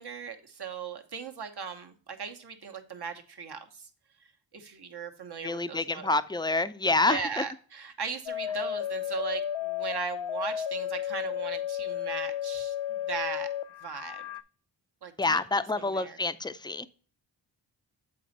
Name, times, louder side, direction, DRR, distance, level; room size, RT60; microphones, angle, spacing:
voice 1, 0.0-3.9 4.2-6.1 7.1-13.5 13.8-14.3 15.0-16.2, right 6 dB, 55° right, 1.1 m, -38 dB
voice 2, 5.4-7.4 15.2-16.9, left 3 dB, 10° left, 0.4 m, -27 dB
sound 1, 8.3-14.4, left 10 dB, 80° left, 0.5 m, -33 dB
7.7 x 4.3 x 4.0 m
cardioid pair, 50°, 46 cm